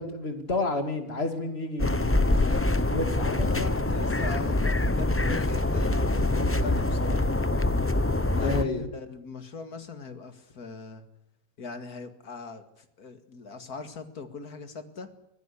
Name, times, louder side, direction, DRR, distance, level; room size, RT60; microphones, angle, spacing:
voice 1, 0.0-3.7 8.4-8.8, left 2 dB, 45° left, 7 dB, 2.8 m, -31 dB
sound 1, 1.8-8.6, left 2 dB, 15° left, 0.5 m, -25 dB
voice 2, 2.3-2.6 3.2-7.3 8.3-11.0 11.6-15.1, left 4 dB, 85° left, 9 dB, 2.6 m, -40 dB
24.5 x 16.0 x 8.3 m, 0.84 s
omnidirectional pair, 1.6 m